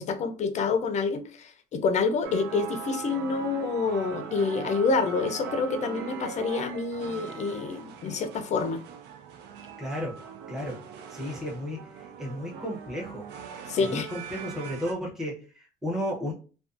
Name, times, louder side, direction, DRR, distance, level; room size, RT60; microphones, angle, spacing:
voice 1, 0.0-8.8 13.7-14.1, left 4 dB, 45° left, 0.4 m, -27 dB
sound 1, 2.2-14.9, right 7 dB, 80° right, 0.4 m, -40 dB
voice 2, 9.8-10.2 10.5-10.8 11.1-11.9 12.2-13.3 13.9-16.3, equal, 5° right, 0.7 m, -33 dB
2.5 x 2.3 x 2.4 m
cardioid pair, 110°, 17 cm